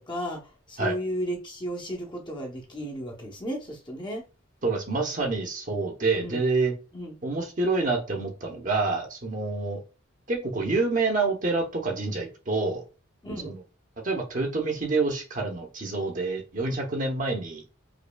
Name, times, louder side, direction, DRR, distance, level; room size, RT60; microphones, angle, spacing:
voice 1, 0.0-4.2 6.1-6.4 6.9-7.2 13.2-13.5, equal, 20° left, 0.7 m, -34 dB
voice 2, 4.6-6.7 7.2-9.8 10.3-12.8 13.4-13.6 14.0-17.6, right 3 dB, 40° right, 0.9 m, -27 dB
5.1 x 2.7 x 2.2 m
head